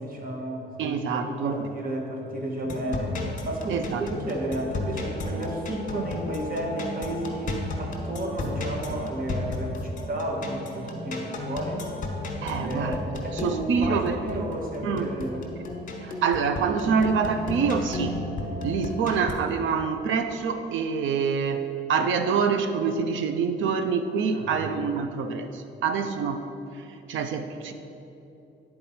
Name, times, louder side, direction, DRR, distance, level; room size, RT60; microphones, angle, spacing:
voice 1, 0.0-11.9 12.7-15.5 24.3-24.6, right 1 dB, 45° right, 0 dB, 1.4 m, -32 dB
voice 2, 0.8-1.7 3.7-4.0 10.8-10.9 12.4-13.0 13.3-14.4 14.8-15.1 16.0-18.2 18.6-26.4 27.1-27.7, right 5 dB, 75° right, 8 dB, 0.6 m, -26 dB
sound 1, 2.6-19.3, left 2 dB, 40° left, 1.3 m, -34 dB
9.5 x 4.4 x 4.3 m, 2.9 s
cardioid pair, 90°, 20 cm